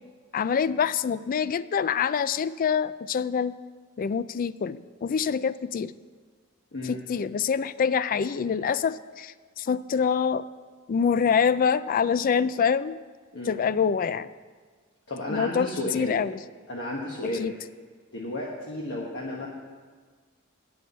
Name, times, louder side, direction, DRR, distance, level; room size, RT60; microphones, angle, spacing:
voice 1, 0.3-3.5 4.0-5.9 6.8-10.4 10.9-13.0 13.5-14.3 15.3-16.4 17.4-17.5, left 6 dB, 40° left, 16 dB, 0.3 m, -25 dB
voice 2, 15.1-16.2 16.7-17.5 18.1-19.5, left 1 dB, 60° left, -3 dB, 1.2 m, -33 dB
9.2 x 6.4 x 8.1 m, 1.5 s
head